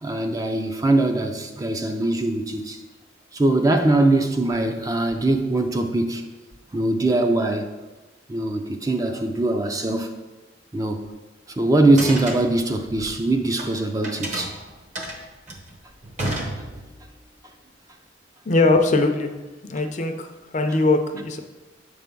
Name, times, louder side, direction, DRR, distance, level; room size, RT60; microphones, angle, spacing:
voice 1, 0.0-2.8 3.3-6.2 6.7-7.7 8.3-10.1 10.7-11.0 11.6-14.5, right 2 dB, 20° right, 0.4 m, -21 dB
sound 1, 12.0-13.7 14.0-17.1, right 1 dB, 40° right, 0.9 m, -32 dB
voice 2, 18.5-19.3 19.7-20.1 20.5-21.4, left 2 dB, 40° left, 0.5 m, -20 dB
7.4 x 3.4 x 5.2 m
head